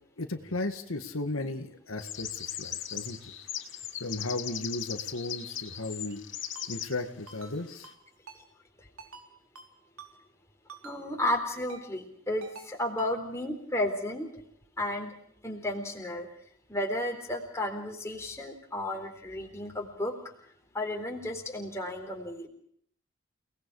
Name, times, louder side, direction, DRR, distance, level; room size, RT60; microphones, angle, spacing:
voice 1, 0.2-3.3 4.0-6.2 6.7-7.9, left 2 dB, 80° left, 6 dB, 2.0 m, -35 dB
sound 1, 2.0-6.9, left 10 dB, 60° left, 2.8 m, -38 dB
Ringtone, 6.6-6.7 7.3-7.5 7.8-8.0 8.3-8.4 9.0-9.3 9.6-9.7 10.0-10.1 10.7-11.0 11.3-11.4 11.7-11.8 12.4-12.7 13.0-13.1, right 4 dB, 85° right, 4.1 m, -47 dB
voice 2, 10.8-14.4 14.8-15.1 15.4-16.3 16.7-20.1 20.7-22.5, left 1 dB, 15° left, 2 dB, 3.9 m, -33 dB
30.0 x 19.0 x 5.0 m, 0.64 s
head